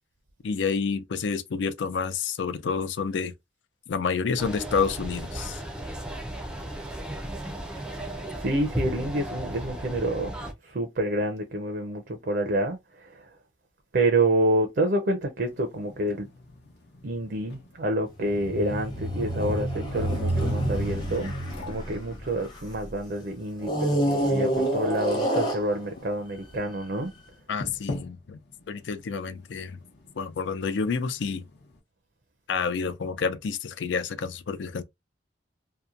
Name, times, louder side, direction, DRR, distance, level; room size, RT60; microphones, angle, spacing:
voice 1, 0.4-3.3 3.9-5.6 27.5-28.4 28.7-29.8 30.2-31.4 32.5-34.8, left 5 dB, 80° left, 0.4 m, -29 dB
sound 1, 4.4-10.5, right 1 dB, 5° right, 0.4 m, -35 dB
voice 2, 8.4-10.3 10.6-13.3 13.9-16.3 17.0-21.3 21.7-27.1, right 1 dB, 55° right, 0.5 m, -28 dB
sound 2, 15.5-31.8, left 2 dB, 65° left, 0.8 m, -46 dB
sound 3, 18.2-22.9 23.6-26.1 26.8-26.9, right 1 dB, 25° left, 0.8 m, -28 dB
2.8 x 2.1 x 2.4 m
head